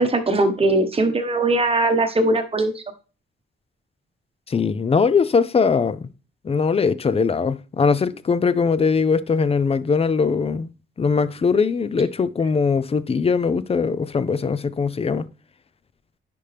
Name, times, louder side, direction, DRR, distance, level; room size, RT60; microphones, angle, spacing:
voice 1, 0.0-2.8, right 2 dB, 25° right, 1.2 m, -20 dB
voice 2, 4.5-6.1 6.4-10.7 11.0-15.2, left 5 dB, 30° left, 0.5 m, -21 dB
10.0 x 5.2 x 3.4 m
cardioid pair, 125°, 21 cm